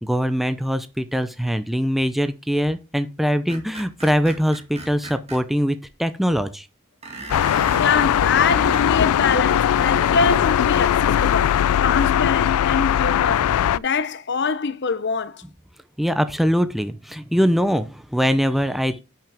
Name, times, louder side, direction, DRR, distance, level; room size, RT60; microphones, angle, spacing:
voice 1, 0.0-6.7 16.0-19.0, equal, ahead, 0.5 m, -22 dB
Screech, 3.5-5.4 7.0-7.9 8.5-10.7, right 2 dB, 30° right, 2.3 m, -38 dB
Traffic in the morning, 7.3-13.8, left 10 dB, 90° left, 0.3 m, -19 dB
voice 2, 7.8-15.4, left 5 dB, 50° left, 0.7 m, -24 dB
10.5 x 5.8 x 3.5 m
head